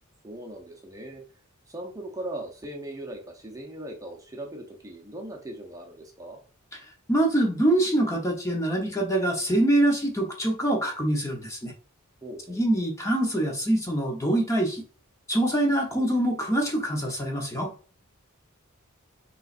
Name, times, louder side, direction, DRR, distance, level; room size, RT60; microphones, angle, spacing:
voice 1, 0.2-1.2 1.7-6.4 12.2-12.6, right 1 dB, 15° right, 1 dB, 0.8 m, -39 dB
voice 2, 7.1-11.7 12.5-14.8 15.3-17.7, right 1 dB, 15° left, 0 dB, 0.8 m, -24 dB
5.4 x 3.1 x 2.5 m, 0.38 s
head